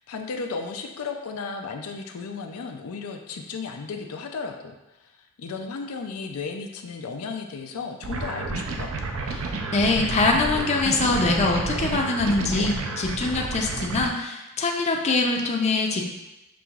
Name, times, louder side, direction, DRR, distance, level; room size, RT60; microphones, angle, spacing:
voice 1, 0.0-5.1 5.4-9.0, left 4 dB, 90° left, 4 dB, 0.4 m, -34 dB
sound 1, 8.0-14.1, right 3 dB, 70° right, 0.5 m, -30 dB
voice 2, 9.4-16.1, left 3 dB, 30° left, 1 dB, 0.4 m, -23 dB
6.1 x 2.9 x 2.3 m, 0.99 s
head